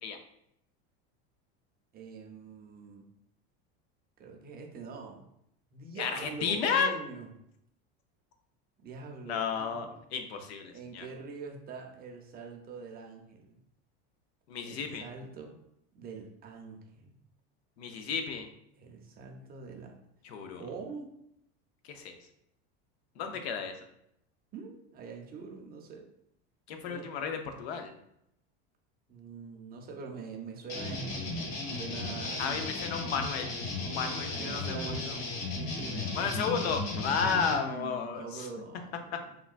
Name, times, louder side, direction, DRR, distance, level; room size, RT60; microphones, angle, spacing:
voice 1, 1.9-3.1 4.2-5.3 5.7-7.3 8.8-10.0 10.7-13.6 14.7-15.6 15.9-17.1 18.8-20.0 20.6-21.1 24.5-26.1 26.9-27.0 29.1-31.3 31.6-32.7 34.3-36.2 37.2-39.2, right 4 dB, 30° right, 1 dB, 0.6 m, -44 dB
voice 2, 6.0-6.9 9.3-11.1 14.5-15.0 17.8-18.5 20.2-20.6 21.8-22.2 23.2-23.8 26.7-27.9 32.4-35.2 36.1-38.5, left 6 dB, 85° left, 6 dB, 0.6 m, -33 dB
sound 1, 30.7-37.5, left 2 dB, 65° left, 0.9 m, -35 dB
3.7 x 2.2 x 2.4 m, 0.77 s
supercardioid pair, 120°, 31 cm